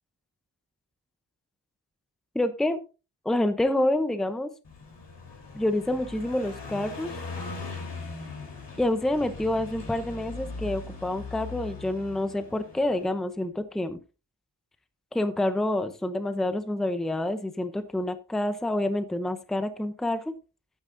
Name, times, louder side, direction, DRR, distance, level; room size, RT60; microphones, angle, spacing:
voice 1, 2.3-2.8 3.2-4.5 5.5-7.1 8.8-14.0 15.1-20.3, left 1 dB, ahead, 10 dB, 0.6 m, -27 dB
Car passing by, 4.6-13.1, left 3 dB, 65° left, 3.7 m, -40 dB
12.0 x 9.2 x 2.6 m, 0.32 s
wide cardioid pair, 170°, 44 cm